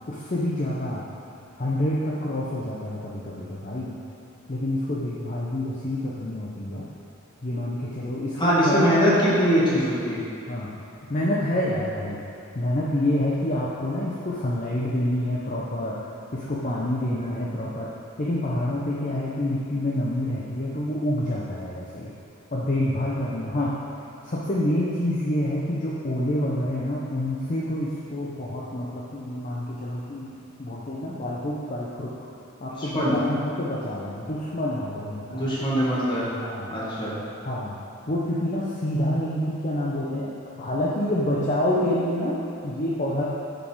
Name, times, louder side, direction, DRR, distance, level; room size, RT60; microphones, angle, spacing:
voice 1, 0.1-1.0 1.6-3.9 4.5-6.8 7.4-8.9 10.5-10.7 11.1-12.2 12.5-16.0 16.3-17.9 18.2-22.1 22.5-23.7 24.2-32.1 32.6-35.4 36.4-36.7 37.4-37.8 38.1-40.3 40.5-43.2, left 1 dB, 40° left, -5 dB, 0.7 m, -27 dB
voice 2, 8.4-10.2 17.2-17.4 32.8-33.1 35.3-36.3 36.7-37.2, equal, 25° left, -8 dB, 1.8 m, -22 dB
6.6 x 6.5 x 4.6 m, 2.6 s
head